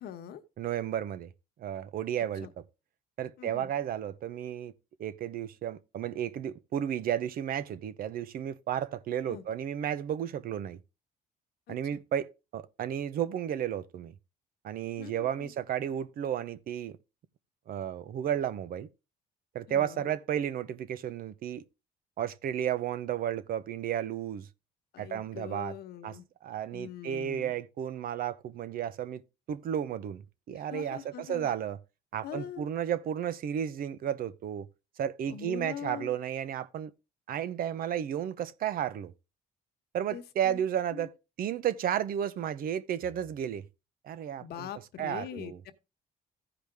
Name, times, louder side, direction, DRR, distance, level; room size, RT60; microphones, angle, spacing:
voice 1, 0.0-0.4 2.4-2.5 3.4-3.7 9.3-9.4 11.7-11.8 15.0-15.5 19.7-20.1 24.9-26.2 26.7-27.5 30.5-31.5 32.2-32.7 35.3-36.1 40.1-40.6 40.9-41.1 44.4-45.7, left 10 dB, 70° left, 1.2 m, -43 dB
voice 2, 0.6-1.3 1.6-2.5 3.2-4.7 5.0-10.8 11.7-12.3 12.5-14.1 14.6-17.0 17.7-18.9 19.5-21.6 22.2-24.5 25.0-25.7 26.0-26.1 26.4-29.2 29.5-30.2 30.5-31.8 32.1-34.7 35.0-36.9 37.3-39.1 39.9-41.1 41.4-43.6 44.0-44.7 45.0-45.6, right 10 dB, 60° right, 0.9 m, -33 dB
15.0 x 5.0 x 3.5 m
cardioid pair, 110°, 17 cm